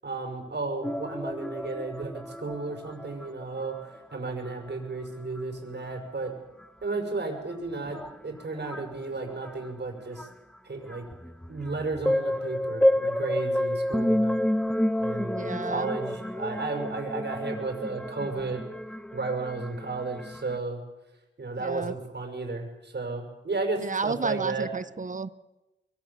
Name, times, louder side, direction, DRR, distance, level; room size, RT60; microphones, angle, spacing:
voice 1, 0.0-6.3 6.8-10.3 10.6-11.0 11.5-14.4 15.0-18.6 19.1-20.8 21.4-24.7, right 3 dB, 55° right, 4 dB, 6.3 m, -33 dB
sound 1, 0.8-3.4 3.7-4.1 4.5-4.7 5.4-5.5 6.6-6.7 7.5-7.6 7.8-8.9 9.4-9.7 10.2-10.3 10.9-20.6, left 1 dB, 5° left, 0.7 m, -30 dB
voice 2, 15.4-15.9 21.6-21.9 23.8-25.3, right 4 dB, 40° right, 14 dB, 1.1 m, -32 dB
25.0 x 23.5 x 7.4 m, 1.0 s
wide cardioid pair, 70°, 21 cm